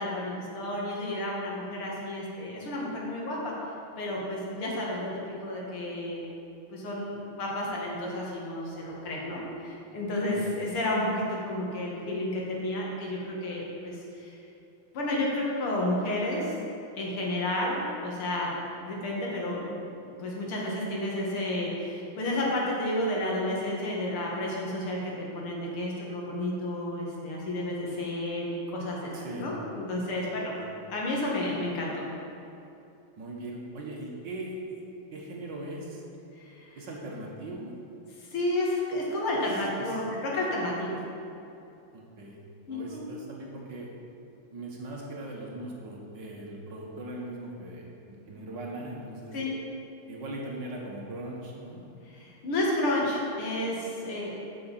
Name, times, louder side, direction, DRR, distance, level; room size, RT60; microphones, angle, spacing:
voice 1, 0.0-3.5 4.0-5.1 5.4-6.2 6.7-14.4 14.9-16.5 16.9-18.5 18.9-30.5 30.9-32.0 36.4-36.7 38.2-41.0 42.7-43.0 49.3-49.5 52.1-54.4, left 1 dB, 75° left, -3 dB, 2.7 m, -31 dB
voice 2, 29.1-29.5 30.6-30.7 33.2-34.8 35.1-36.0 36.8-37.7 39.8-40.0 41.9-42.4 42.7-43.9 44.5-49.4 50.1-51.8, right 1 dB, 55° right, -2 dB, 2.0 m, -39 dB
8.6 x 6.5 x 7.4 m, 2.8 s
omnidirectional pair, 2.4 m